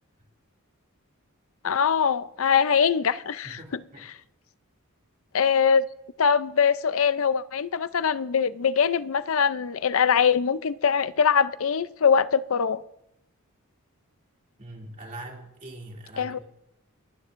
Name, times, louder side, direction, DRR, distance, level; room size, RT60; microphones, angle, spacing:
voice 1, 1.6-3.6 5.3-5.8 6.2-12.8 16.2-16.4, left 6 dB, 65° left, 0.5 m, -22 dB
voice 2, 3.4-4.1 14.6-16.4, right 1 dB, 35° right, 2.6 m, -42 dB
28.5 x 11.5 x 2.6 m
head